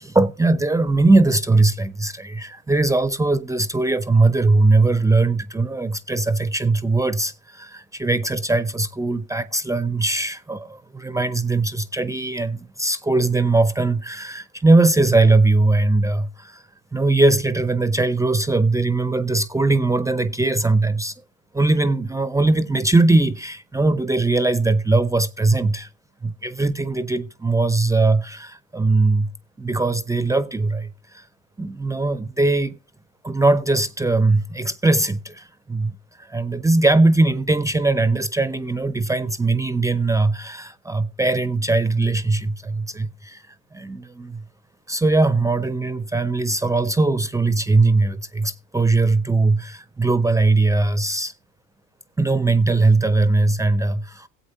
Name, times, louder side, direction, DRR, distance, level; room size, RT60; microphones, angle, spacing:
voice 1, 0.0-16.6 16.9-21.1 21.5-25.9 26.2-29.3 29.6-31.3 31.6-32.8 33.2-43.4 43.7-44.4 44.9-51.3 52.2-54.3, right 3 dB, 10° right, 0.4 m, -20 dB
18.0 x 8.0 x 2.6 m
hypercardioid pair, 75°, 40 cm